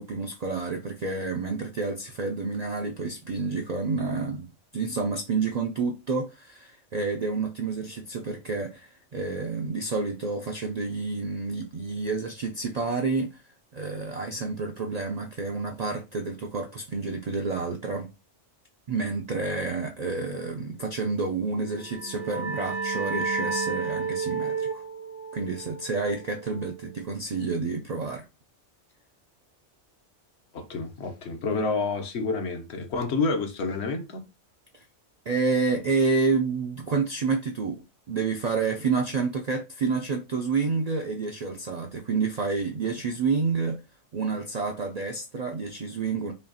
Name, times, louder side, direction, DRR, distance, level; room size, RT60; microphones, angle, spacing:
voice 1, 0.0-13.4 13.7-18.1 18.9-24.8 25.3-28.2 34.7-34.8 35.3-43.8 44.1-46.3, right 4 dB, 60° right, 0.4 m, -29 dB
sound 1, 21.7-27.1, right 4 dB, 85° right, 1.0 m, -32 dB
voice 2, 30.5-34.2, left 3 dB, 65° left, 1.0 m, -29 dB
5.3 x 2.4 x 2.7 m
omnidirectional pair, 1.2 m